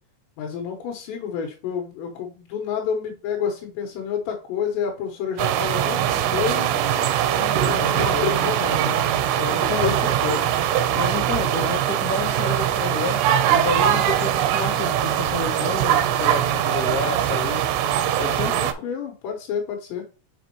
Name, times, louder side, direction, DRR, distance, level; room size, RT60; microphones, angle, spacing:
voice 1, 0.4-6.7 7.3-9.0 9.4-10.6 18.6-20.0, left 7 dB, 85° left, 1 dB, 3.4 m, -29 dB
sound 1, 5.4-18.7, right 10 dB, 80° right, 2.7 m, -22 dB
voice 2, 6.7-7.1 7.6-8.3 9.7-10.0 10.9-13.2 13.5-17.6 18.2-18.5, left 4 dB, 55° left, 0 dB, 0.9 m, -30 dB
6.6 x 5.2 x 3.0 m, 0.34 s
omnidirectional pair, 5.0 m